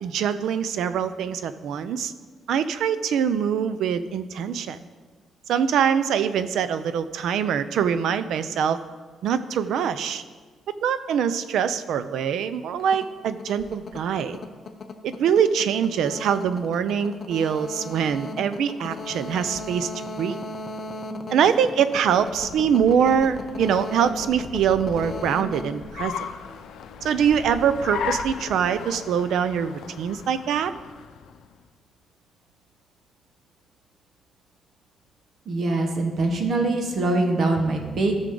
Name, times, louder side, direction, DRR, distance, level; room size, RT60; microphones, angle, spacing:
voice 1, 0.0-2.1 2.5-4.8 5.5-8.8 9.2-10.2 10.8-14.4 15.0-20.4 21.3-26.3 27.0-30.7, right 8 dB, 80° right, 12 dB, 0.5 m, -23 dB
sound 1, 12.8-26.7, left 2 dB, 35° left, 0.7 m, -37 dB
Car, 22.0-31.6, left 7 dB, 80° left, 0.6 m, -37 dB
voice 2, 35.4-38.1, right 2 dB, 45° right, 3 dB, 1.4 m, -23 dB
15.5 x 6.4 x 3.8 m, 1.4 s
cardioid pair, 155°, 0 cm